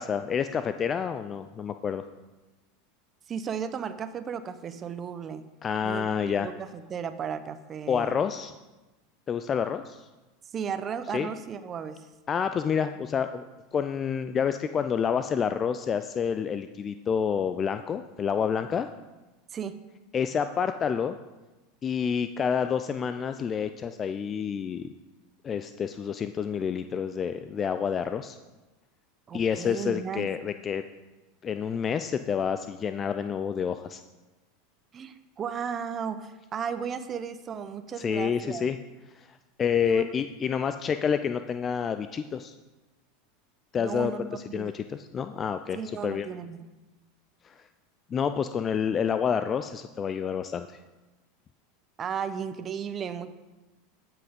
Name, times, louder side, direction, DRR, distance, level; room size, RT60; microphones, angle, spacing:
voice 1, 0.0-2.0 5.6-6.5 7.9-8.5 9.3-10.1 11.1-11.3 12.3-13.4 13.7-18.9 20.1-21.2 21.8-24.9 25.4-28.4 29.3-30.8 31.4-34.0 38.0-38.8 39.1-42.5 43.7-46.3 47.4-47.6 48.1-50.8, left 7 dB, 30° left, 10 dB, 0.4 m, -28 dB
voice 2, 3.3-5.4 5.8-8.2 10.5-12.1 19.5-19.7 29.3-30.3 34.9-38.7 39.9-40.1 43.8-44.7 45.7-46.7 52.0-53.3, right 7 dB, 35° right, 11 dB, 0.8 m, -35 dB
14.0 x 6.0 x 5.2 m, 1.1 s
hypercardioid pair, 90°, 0 cm